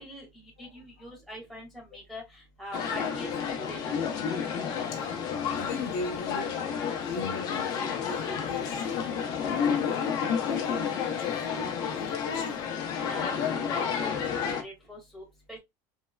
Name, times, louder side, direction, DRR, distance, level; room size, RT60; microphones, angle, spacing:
voice 1, 0.0-4.1 13.0-15.6, equal, ahead, 1.4 m, -44 dB
sound 1, 2.7-14.6, left 7 dB, 45° left, 0.7 m, -30 dB
voice 2, 5.5-10.1 10.3-12.6, left 4 dB, 75° left, 1.0 m, -38 dB
3.2 x 2.8 x 2.2 m
cardioid pair, 155°, 10 cm